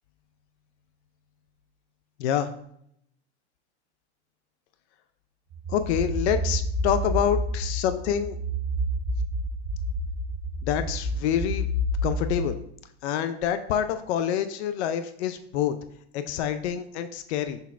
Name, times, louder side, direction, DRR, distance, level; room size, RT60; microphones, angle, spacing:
sound 1, 5.5-12.3, equal, 40° right, 0.7 m, -29 dB
voice 1, 5.7-8.4 10.6-11.7 12.0-12.6 13.0-15.8 16.1-17.6, left 9 dB, 75° left, 10 dB, 0.5 m, -27 dB
5.4 x 4.0 x 2.4 m, 0.71 s
supercardioid pair, 120°, 34 cm